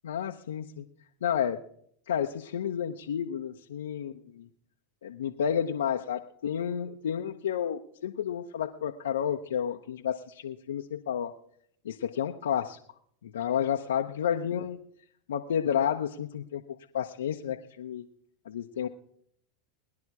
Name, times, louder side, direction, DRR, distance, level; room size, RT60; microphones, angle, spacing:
voice 1, 0.0-0.9 1.2-1.6 2.1-4.5 5.0-11.3 11.8-12.8 13.2-14.8 15.3-16.6 16.9-18.1 18.5-18.9, left 8 dB, 80° left, 2 dB, 0.8 m, -31 dB
19.5 x 10.5 x 4.8 m, 0.67 s
hypercardioid pair, 95°, 0 cm